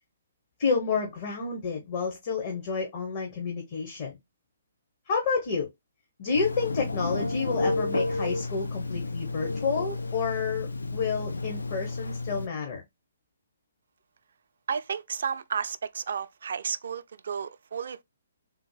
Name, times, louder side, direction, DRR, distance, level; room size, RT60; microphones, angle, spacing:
voice 1, 0.6-4.2 5.1-5.7 6.2-12.8, left 5 dB, 45° left, 0.9 m, -30 dB
Telephone, 6.3-12.5, left 3 dB, 85° left, 0.4 m, -31 dB
voice 2, 14.7-18.0, right 7 dB, 65° right, 0.3 m, -32 dB
3.5 x 2.0 x 3.1 m
hypercardioid pair, 135°, 0 cm